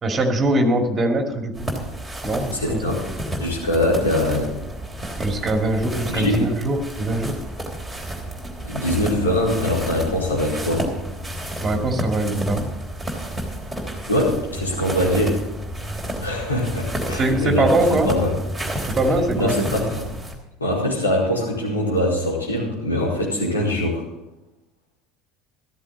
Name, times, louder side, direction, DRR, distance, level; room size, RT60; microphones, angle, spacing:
voice 1, 0.0-1.7 2.2-3.0 5.2-7.4 11.6-12.7 17.1-18.1 18.9-19.6, right 1 dB, 25° right, 3 dB, 2.5 m, -22 dB
sound 1, 1.5-20.3, right 1 dB, ahead, 3.4 m, -30 dB
voice 2, 2.5-3.0 3.4-4.5 6.1-6.5 8.6-10.9 14.1-15.3 16.2-18.3 19.3-19.8 20.6-24.0, left 1 dB, 80° left, -5 dB, 4.6 m, -22 dB
14.0 x 14.0 x 4.0 m, 0.96 s
figure-of-eight pair, 65°, 0 cm